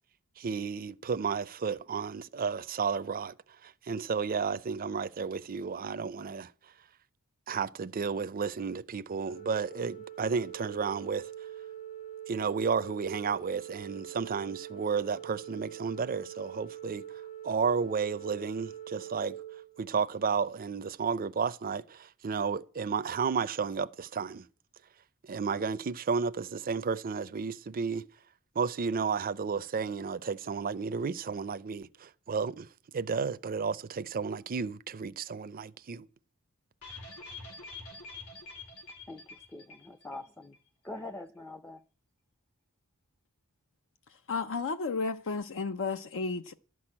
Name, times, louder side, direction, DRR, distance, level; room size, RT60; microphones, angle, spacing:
voice 1, 0.4-3.3 3.6-6.5 7.5-11.3 12.3-17.1 17.4-19.4 19.8-24.5 25.2-28.1 28.6-32.7 32.9-36.1, right 5 dB, 40° right, 0.5 m, -32 dB
Organ, 9.3-20.3, right 10 dB, 45° left, 1.5 m, -44 dB
sound 1, 36.8-40.3 40.5-40.6 40.9-41.0, left 3 dB, 90° left, 3.3 m, -46 dB
voice 2, 39.1-40.6 40.8-41.8, left 2 dB, 10° left, 0.5 m, -44 dB
voice 3, 44.3-46.5, left 4 dB, 60° left, 0.6 m, -32 dB
12.5 x 6.2 x 8.6 m
head